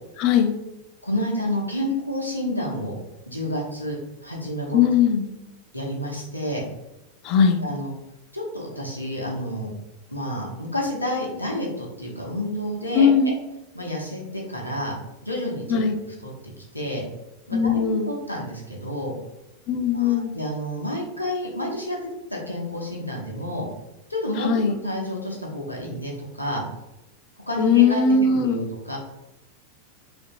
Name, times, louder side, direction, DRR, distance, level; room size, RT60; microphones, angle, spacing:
voice 1, 0.2-0.5 4.7-5.3 7.2-7.6 12.9-13.3 15.7-16.0 17.5-18.1 19.7-20.3 24.4-24.8 27.6-28.6, left 6 dB, 40° left, 7 dB, 0.3 m, -19 dB
voice 2, 1.0-3.0 3.3-4.9 5.7-6.6 7.6-7.9 8.3-9.7 10.1-13.1 13.7-14.9 15.2-15.8 16.2-16.3 16.7-17.0 17.5-19.2 19.9-22.0 22.3-23.7 24.1-24.5 24.8-26.6 27.5-28.0 28.3-29.0, left 1 dB, 85° left, -2 dB, 0.6 m, -29 dB
2.6 x 2.5 x 2.3 m, 0.92 s
figure-of-eight pair, 90°, 0 cm